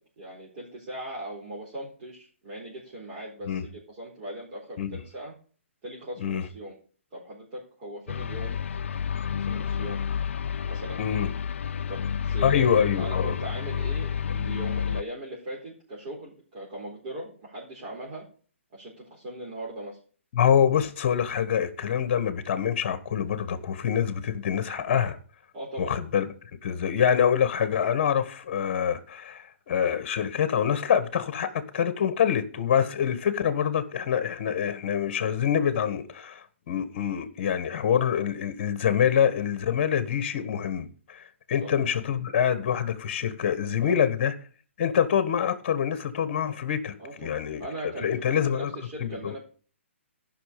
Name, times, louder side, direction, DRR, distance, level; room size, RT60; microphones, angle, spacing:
voice 1, 0.2-5.3 5.8-6.8 7.1-8.6 9.3-10.0 10.6-11.0 11.9-18.2 18.7-20.0 25.5-25.9 41.6-41.7 43.8-44.1 47.0-49.4, right 1 dB, 30° right, 4.0 m, -39 dB
sound 1, 8.1-15.0, left 7 dB, 70° left, 0.5 m, -30 dB
voice 2, 11.0-11.3 12.4-13.4 20.3-25.2 25.8-26.3 26.6-41.2 41.5-44.3 44.8-48.7 49.0-49.4, left 8 dB, 40° left, 1.4 m, -25 dB
14.0 x 5.8 x 6.8 m
hypercardioid pair, 160°, 7 cm